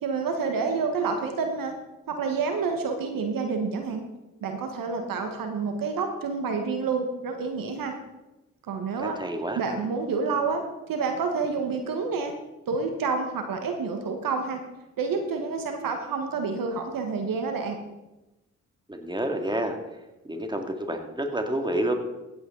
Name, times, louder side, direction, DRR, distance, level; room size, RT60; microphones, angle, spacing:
voice 1, 0.0-1.7 2.1-4.0 4.4-7.9 8.6-9.2 9.6-10.6 10.9-12.3 12.7-14.6 15.0-17.8, right 4 dB, 70° right, 5 dB, 1.5 m, -28 dB
voice 2, 9.2-9.6 18.9-19.8 20.2-21.9, right 1 dB, 15° right, 4 dB, 2.3 m, -29 dB
15.5 x 8.7 x 3.9 m, 1.0 s
hypercardioid pair, 40°, 35 cm